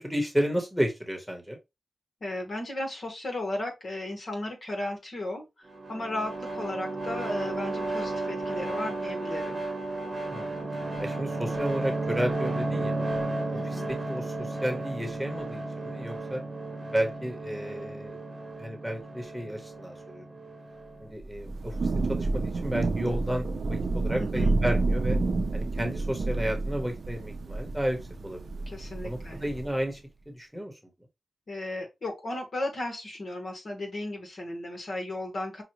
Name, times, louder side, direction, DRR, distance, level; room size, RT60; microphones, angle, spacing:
voice 1, 0.0-1.6 10.3-10.6 11.0-12.9 13.3-16.4 16.9-18.2 18.6-20.2 21.0-25.2 25.5-28.4 29.0-30.0 30.3-30.8, equal, 5° right, 1.2 m, -32 dB
voice 2, 2.2-9.6 13.6-13.9 24.2-24.6 28.7-29.4 31.5-35.6, left 1 dB, 65° left, 1.5 m, -35 dB
sound 1, 5.7-21.1, right 2 dB, 40° right, 1.1 m, -33 dB
Thunder / Rain, 21.2-29.8, right 3 dB, 75° right, 0.4 m, -29 dB
5.6 x 2.4 x 3.0 m
wide cardioid pair, 95°, 0 cm